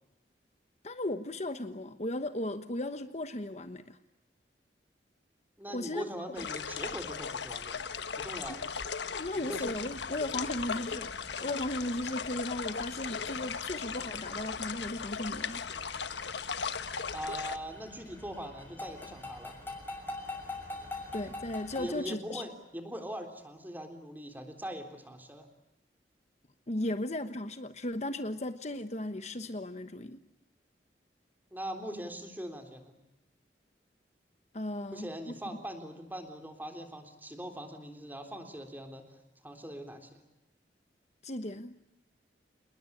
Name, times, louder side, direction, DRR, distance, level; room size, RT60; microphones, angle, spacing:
voice 1, 0.8-4.0 5.7-6.1 9.1-11.1 11.4-15.6 21.1-22.4 26.7-30.2 34.5-35.1 41.2-41.7, left 1 dB, 40° left, 9 dB, 1.2 m, -36 dB
voice 2, 5.6-7.8 8.2-8.6 9.3-9.7 17.1-19.6 21.8-25.5 31.5-32.9 34.8-40.1, equal, 10° right, 5 dB, 3.6 m, -41 dB
sound 1, 6.4-17.6, left 6 dB, 85° left, 1.3 m, -37 dB
sound 2, 9.6-21.9, left 2 dB, 10° left, 6.6 m, -46 dB
28.5 x 21.0 x 8.6 m, 0.90 s
head